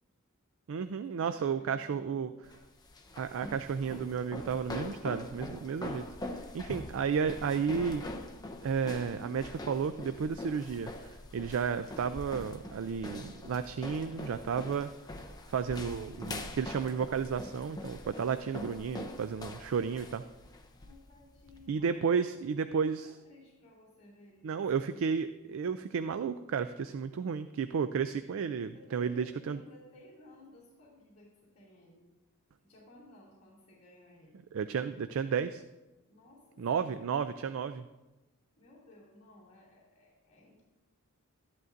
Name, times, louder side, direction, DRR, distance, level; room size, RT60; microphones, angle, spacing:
voice 1, 0.7-2.3 3.2-8.1 8.6-14.9 15.5-20.2 21.7-23.1 24.4-29.6 34.5-35.6 36.6-37.8, right 6 dB, 65° right, 10 dB, 0.3 m, -32 dB
voice 2, 1.3-2.5 20.7-22.5 23.0-24.8 28.7-32.1 32.6-34.5 36.1-37.3 38.6-40.6, left 1 dB, 40° left, -9 dB, 2.5 m, -58 dB
sound 1, 2.4-21.7, left 1 dB, 20° left, 0.6 m, -43 dB
12.5 x 11.0 x 2.6 m, 1.1 s
head